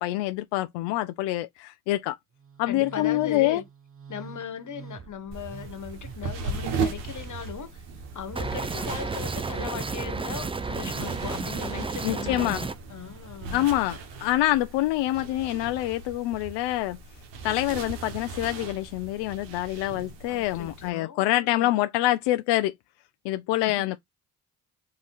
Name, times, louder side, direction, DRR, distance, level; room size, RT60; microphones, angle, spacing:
voice 1, 0.0-2.2 2.6-3.6 12.0-12.6 13.5-17.0 17.4-22.7 23.2-24.0, left 16 dB, 80° left, 0.6 m, -26 dB
Musical instrument, 2.3-14.1, right 6 dB, 30° right, 1.0 m, -45 dB
voice 2, 2.7-3.6 4.1-7.8 8.1-13.7 20.3-21.8 23.6-24.0, left 8 dB, 45° left, 1.4 m, -38 dB
sound 1, 5.3-20.9, right 4 dB, 80° right, 1.2 m, -38 dB
sound 2, 8.4-12.7, right 4 dB, 15° right, 0.5 m, -32 dB
3.7 x 3.1 x 4.1 m
supercardioid pair, 65°, 42 cm